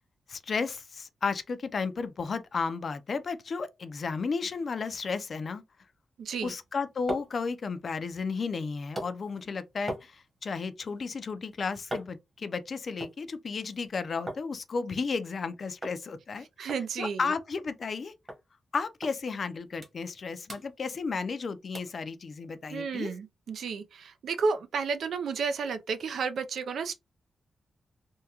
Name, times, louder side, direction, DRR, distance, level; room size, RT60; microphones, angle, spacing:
voice 1, 0.3-5.6 6.4-16.5 17.0-18.1 18.7-23.1, left 4 dB, 50° left, 0.4 m, -33 dB
voice 2, 6.2-6.5 16.6-17.3 22.7-26.9, right 5 dB, 80° right, 0.4 m, -32 dB
sound 1, 6.6-14.5 14.8-15.4 15.8-16.0 16.3-16.4 16.7-18.0 18.3-18.4 19.0-19.2 19.5-20.2 20.4-21.4 21.7-22.0 22.5-22.6, right 1 dB, 30° right, 1.2 m, -42 dB
3.5 x 2.2 x 2.8 m
wide cardioid pair, 130°, 0 cm